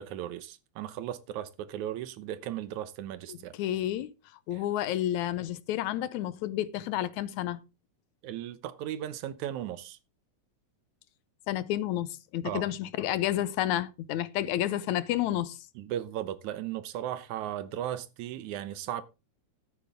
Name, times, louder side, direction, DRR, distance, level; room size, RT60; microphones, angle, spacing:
voice 1, 0.0-3.5 4.5-4.6 8.2-10.0 12.4-12.7 15.8-19.0, right 11 dB, 80° right, 2.3 m, -36 dB
voice 2, 3.3-4.1 4.5-7.6 11.5-15.6, left 13 dB, 80° left, 2.2 m, -30 dB
13.0 x 9.7 x 3.5 m
omnidirectional pair, 3.3 m